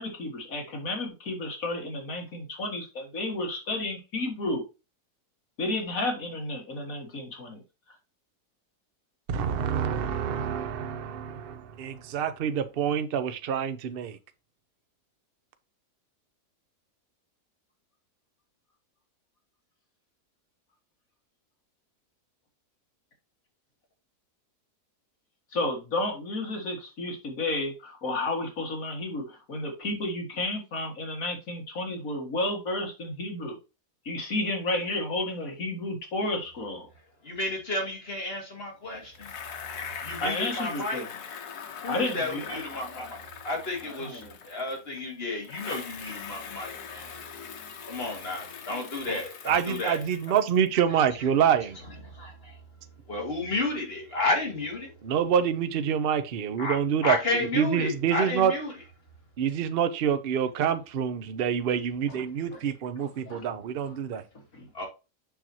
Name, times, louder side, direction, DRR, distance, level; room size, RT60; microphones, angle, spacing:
voice 1, 0.0-4.6 5.6-7.6 25.5-33.6 34.1-36.9 40.2-41.2 41.9-43.1 43.8-44.4 62.1-62.2 62.5-62.6 63.0-63.5 63.9-64.0 64.5-64.7, left 2 dB, 60° left, 2.3 m, -32 dB
voice 2, 9.3-14.2 49.1-51.8 55.0-58.5 59.4-64.2, right 8 dB, 50° right, 0.7 m, -27 dB
voice 3, 37.2-39.3 40.0-41.0 41.8-43.2 43.4-47.1 47.9-50.0 52.2-52.5 53.1-54.9 56.6-56.8 57.0-58.7 64.7-64.9, left 2 dB, 40° left, 2.4 m, -32 dB
Bicycle, 39.1-45.0 45.4-50.7, left 7 dB, 80° left, 1.6 m, -41 dB
6.9 x 5.9 x 2.8 m
omnidirectional pair, 1.7 m